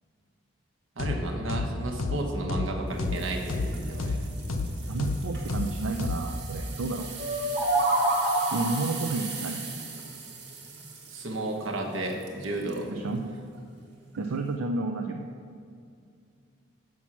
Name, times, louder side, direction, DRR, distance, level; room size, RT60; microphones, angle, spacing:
sound 1, 1.0-1.2 1.5-1.7 2.0-2.2 2.5-2.7 3.0-3.2 3.5-3.7 4.0-4.2 4.5-4.7 5.0-5.2 5.5-5.7 6.0-6.2, left 3 dB, 85° left, 0.7 m, -29 dB
voice 1, 1.0-4.2 11.1-12.9, right 2 dB, 75° right, 1 dB, 1.1 m, -32 dB
sound 2, 3.0-12.9 13.4-13.6 14.1-14.2, right 5 dB, 55° right, 1.3 m, -41 dB
voice 2, 4.9-7.1 8.5-9.7 12.9-13.2 14.2-15.2, right 3 dB, 90° right, 3 dB, 0.5 m, -31 dB
sound 3, 7.2-9.0, right 1 dB, 35° right, 1.4 m, -26 dB
6.1 x 6.0 x 7.2 m, 2.3 s
head